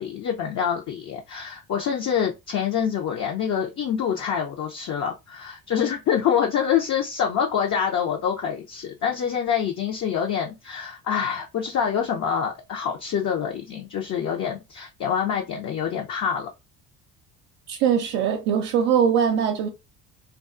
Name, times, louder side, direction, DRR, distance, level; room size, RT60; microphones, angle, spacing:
voice 1, 0.0-16.5, left 8 dB, 40° left, 0.6 m, -26 dB
voice 2, 17.7-19.7, right 8 dB, 65° right, 0.6 m, -21 dB
2.3 x 2.3 x 2.4 m
hypercardioid pair, 65°, 44 cm